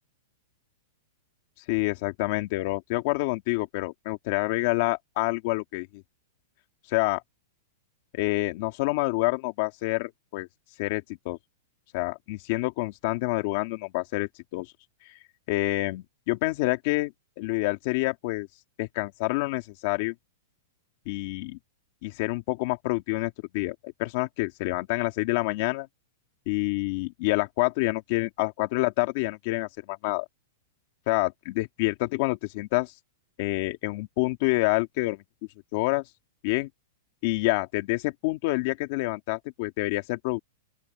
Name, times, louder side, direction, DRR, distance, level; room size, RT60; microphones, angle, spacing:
voice 1, 1.7-6.0 6.9-7.2 8.1-10.5 10.8-11.4 11.9-14.7 15.5-18.5 18.8-20.1 21.1-21.6 22.0-25.9 26.5-30.3 31.1-32.9 33.4-35.2 35.7-36.0 36.4-36.7 37.2-40.4, left 21 dB, 40° left, 2.2 m, -27 dB
open air
supercardioid pair, 170°, 0 cm